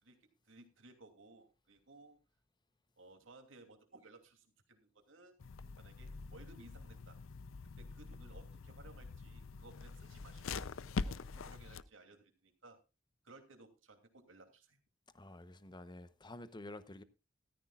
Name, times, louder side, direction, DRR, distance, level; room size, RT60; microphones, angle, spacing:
voice 1, 0.0-2.2 3.0-5.3 5.8-7.2 7.8-10.7 11.0-12.8 13.2-14.8, right 2 dB, 75° right, 2.8 m, -59 dB
sound 1, 5.4-11.8, left 4 dB, 90° left, 0.5 m, -44 dB
voice 2, 15.1-17.0, left 1 dB, 25° left, 0.8 m, -50 dB
14.0 x 14.0 x 2.4 m
head